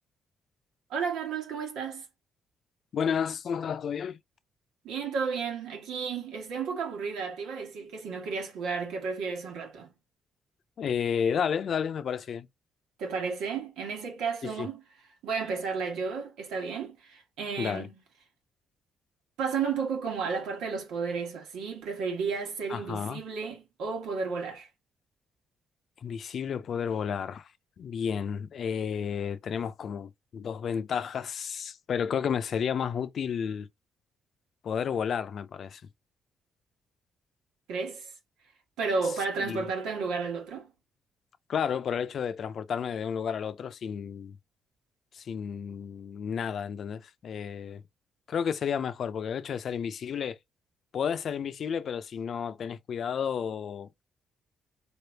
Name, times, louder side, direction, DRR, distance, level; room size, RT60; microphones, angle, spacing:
voice 1, 0.9-2.0 4.8-9.9 13.0-14.8 15.2-17.9 19.4-24.7 37.7-38.1 38.8-40.7, right 5 dB, 90° right, 1.7 m, -32 dB
voice 2, 2.9-4.2 10.8-12.5 14.4-14.7 17.6-17.9 22.7-23.2 26.0-27.5 27.8-33.7 34.6-35.8 39.4-39.6 41.5-44.4 45.1-47.8 48.3-50.4 50.9-54.0, left 7 dB, 60° left, 0.6 m, -31 dB
4.3 x 3.4 x 2.8 m
cardioid pair, 90°, 0 cm